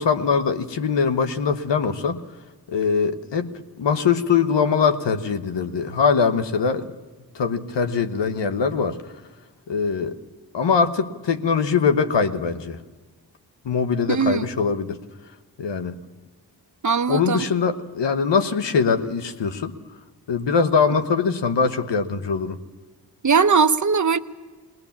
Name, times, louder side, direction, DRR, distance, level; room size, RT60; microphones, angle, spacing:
voice 1, 0.0-2.2 2.7-6.9 7.3-9.0 9.7-10.1 10.5-12.8 13.6-15.0 15.6-16.0 17.1-19.7 20.3-22.6, left 5 dB, 85° left, 9 dB, 1.2 m, -22 dB
voice 2, 14.1-14.5 16.8-17.4 23.2-24.2, right 5 dB, 45° right, 11 dB, 0.9 m, -19 dB
20.5 x 20.0 x 7.2 m, 1.4 s
cardioid pair, 45°, 42 cm